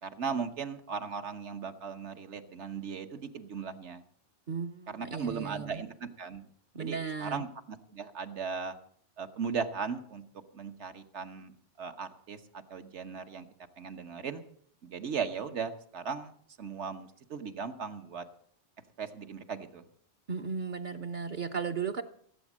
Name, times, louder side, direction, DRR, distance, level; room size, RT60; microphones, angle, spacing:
voice 1, 0.0-4.0 4.9-6.5 6.8-8.8 9.2-10.2 10.5-13.5 13.8-14.4 14.8-16.3 16.6-18.2 19.0-19.8, right 6 dB, 70° right, 7 dB, 1.4 m, -37 dB
voice 2, 4.5-5.8 6.7-7.4 20.3-22.0, right 5 dB, 50° right, 5 dB, 0.8 m, -35 dB
16.5 x 8.1 x 7.3 m, 0.63 s
omnidirectional pair, 1.2 m